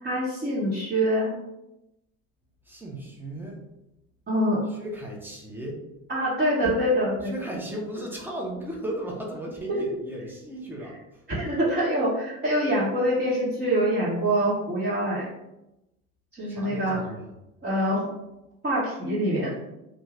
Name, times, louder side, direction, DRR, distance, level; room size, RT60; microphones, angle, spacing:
voice 1, 0.0-1.3 4.3-4.7 6.1-7.3 11.3-15.2 16.3-17.0 17.6-18.1 18.6-19.5, equal, 25° right, -9 dB, 1.1 m, -25 dB
voice 2, 2.7-3.6 4.7-5.8 7.2-11.2 16.5-17.3, right 1 dB, 5° right, -2 dB, 0.8 m, -36 dB
2.5 x 2.5 x 3.2 m, 0.91 s
hypercardioid pair, 75°, 42 cm